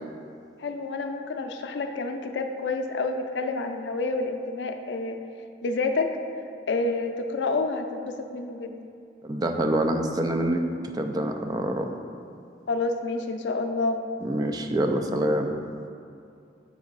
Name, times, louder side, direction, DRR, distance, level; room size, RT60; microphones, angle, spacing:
voice 1, 0.6-5.2 5.6-6.1 6.7-8.7 12.7-14.0, left 3 dB, 80° left, 6 dB, 0.4 m, -28 dB
voice 2, 9.2-10.6 10.9-11.9 14.2-15.5, right 1 dB, 20° right, 5 dB, 0.3 m, -26 dB
7.1 x 3.6 x 3.9 m, 2.5 s
head